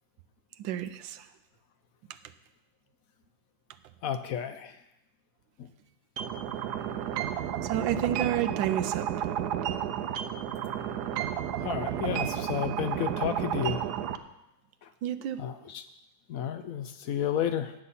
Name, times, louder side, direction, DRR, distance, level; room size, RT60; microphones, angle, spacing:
voice 1, 0.6-1.3 7.6-9.3 15.0-15.4, right 11 dB, 90° right, 11 dB, 1.3 m, -31 dB
voice 2, 4.0-4.8 5.6-5.7 11.6-13.9 14.8-14.9 15.4-15.8 16.3-17.7, left 9 dB, 70° left, 10 dB, 0.8 m, -32 dB
sound 1, 6.2-14.2, right 10 dB, 70° right, 1.1 m, -32 dB
17.5 x 7.0 x 4.2 m, 0.91 s
omnidirectional pair, 2.0 m